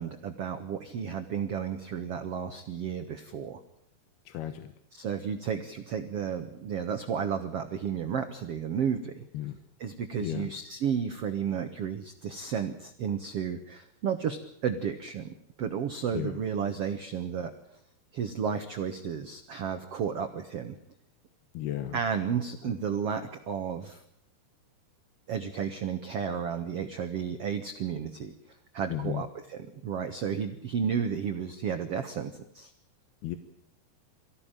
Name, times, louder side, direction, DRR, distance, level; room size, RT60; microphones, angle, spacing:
voice 1, 0.0-3.6 4.9-9.2 9.8-17.5 18.1-20.8 21.9-24.0 25.3-28.3 28.7-32.7, right 7 dB, 80° right, 7 dB, 1.3 m, -32 dB
voice 2, 4.3-4.7 9.3-9.6 10.2-10.5 16.1-16.4 21.5-22.0 28.9-29.2 33.2-33.4, left 12 dB, 75° left, 9 dB, 3.0 m, -34 dB
23.5 x 15.5 x 9.0 m, 0.71 s
omnidirectional pair, 4.7 m